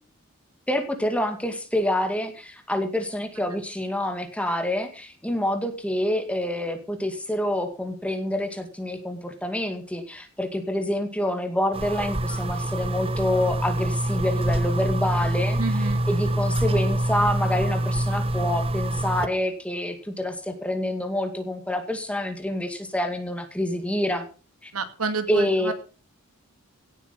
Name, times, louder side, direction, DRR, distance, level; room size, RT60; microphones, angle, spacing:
voice 1, 0.7-24.3 24.6-24.7 25.3-25.7, left 1 dB, 5° left, 6 dB, 2.1 m, -27 dB
sound 1, 11.7-19.3, right 1 dB, 25° right, 1.0 m, -25 dB
voice 2, 15.6-16.0 24.7-25.7, right 4 dB, 85° right, 9 dB, 2.3 m, -29 dB
17.0 x 8.3 x 5.7 m, 0.37 s
head